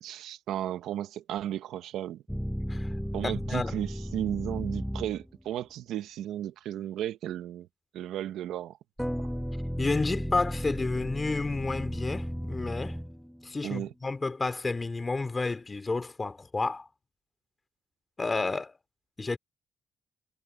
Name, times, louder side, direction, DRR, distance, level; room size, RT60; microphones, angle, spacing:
voice 1, 0.0-2.2 3.1-7.7 7.9-8.8 13.6-13.9, right 11 dB, 80° right, 1.2 m, -34 dB
sound 1, 2.3-5.4 9.0-13.6, equal, ahead, 7.5 m, -34 dB
voice 2, 3.2-3.7 9.8-13.0 13.4-16.9 18.2-18.8 19.2-19.4, left 3 dB, 25° left, 3.0 m, -31 dB
cardioid pair, 90°, 0 cm